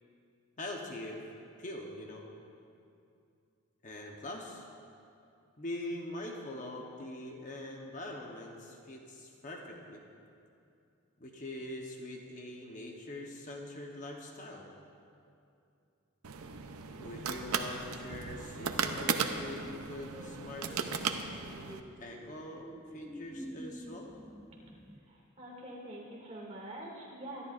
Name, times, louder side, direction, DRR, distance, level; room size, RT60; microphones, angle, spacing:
voice 1, 0.6-1.2 1.6-2.3 3.8-4.6 5.6-10.0 11.2-14.7 16.9-21.2 22.0-24.1, left 1 dB, 35° left, 0 dB, 1.0 m, -43 dB
sound 1, 16.2-21.8, right 5 dB, 80° right, 0.7 m, -36 dB
sound 2, 20.0-25.0, equal, ahead, 0.5 m, -49 dB
voice 2, 25.4-27.5, right 1 dB, 30° right, -4 dB, 2.3 m, -44 dB
23.5 x 11.5 x 2.5 m, 2.5 s
head